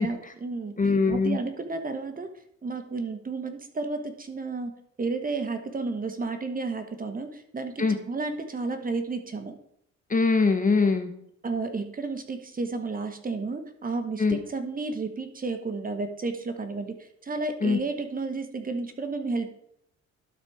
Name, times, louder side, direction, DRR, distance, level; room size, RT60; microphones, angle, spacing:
voice 1, 0.0-0.7 1.1-2.3 2.6-4.7 5.0-9.6 11.4-19.5, right 3 dB, 30° right, 7 dB, 1.2 m, -32 dB
voice 2, 0.8-1.4 7.8-8.0 10.1-11.1 14.2-14.4 17.6-17.8, left 4 dB, 25° left, 8 dB, 0.9 m, -22 dB
12.0 x 4.2 x 4.8 m, 0.72 s
cardioid pair, 90°, 30 cm